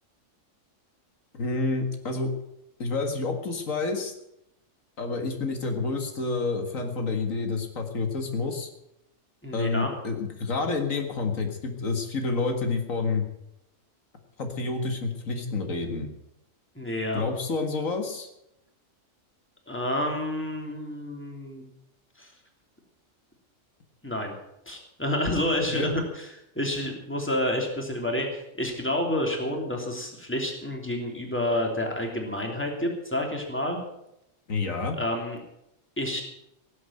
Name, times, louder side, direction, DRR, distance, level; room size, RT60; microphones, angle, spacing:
voice 1, 1.3-2.3 2.8-4.1 5.0-8.7 9.5-13.3 14.4-16.1 17.1-18.3 25.7-25.9 34.5-35.0, left 3 dB, 90° left, 5 dB, 2.2 m, -29 dB
voice 2, 9.4-9.9 16.7-17.2 19.7-21.6 22.2-22.3 24.0-24.3 24.7-33.8 35.0-35.4 36.0-36.2, left 1 dB, 10° left, 1 dB, 3.1 m, -29 dB
17.0 x 7.9 x 8.9 m, 0.83 s
omnidirectional pair, 1.3 m